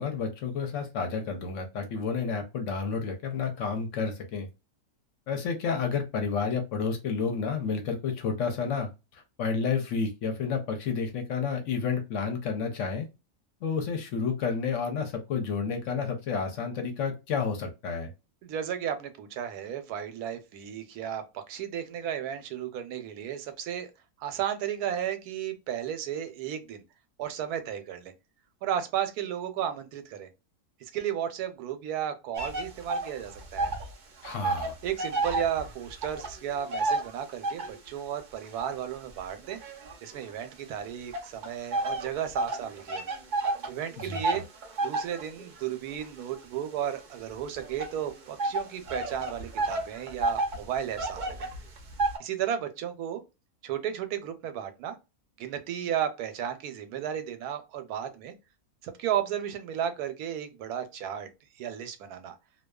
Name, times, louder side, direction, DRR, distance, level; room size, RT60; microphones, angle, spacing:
voice 1, 0.0-4.5 5.3-13.1 13.6-18.1 34.2-34.8 44.0-44.4, left 5 dB, 65° left, 0.9 m, -30 dB
voice 2, 18.4-23.9 24.2-26.8 27.2-28.1 28.6-30.3 30.8-33.7 34.8-39.6 40.0-43.1 43.7-44.4 44.8-51.5 52.2-53.2 53.6-55.0 55.4-58.3 58.8-61.3 61.6-62.4, right 9 dB, 90° right, 1.1 m, -34 dB
sound 1, 32.3-33.9 34.2-37.9 38.4-40.5 41.1-52.2, right 2 dB, 60° right, 0.5 m, -32 dB
2.6 x 2.2 x 2.2 m
omnidirectional pair, 1.6 m